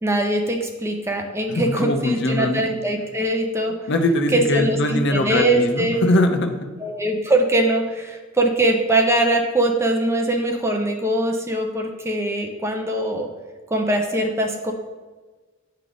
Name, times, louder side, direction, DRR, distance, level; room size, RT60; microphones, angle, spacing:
voice 1, 0.0-3.7 4.3-6.0 6.8-13.3 13.7-14.7, right 1 dB, 15° right, 3 dB, 0.6 m, -22 dB
voice 2, 1.5-2.7 3.9-6.7, left 1 dB, 60° left, 5 dB, 0.6 m, -21 dB
8.9 x 3.3 x 3.8 m, 1.3 s
head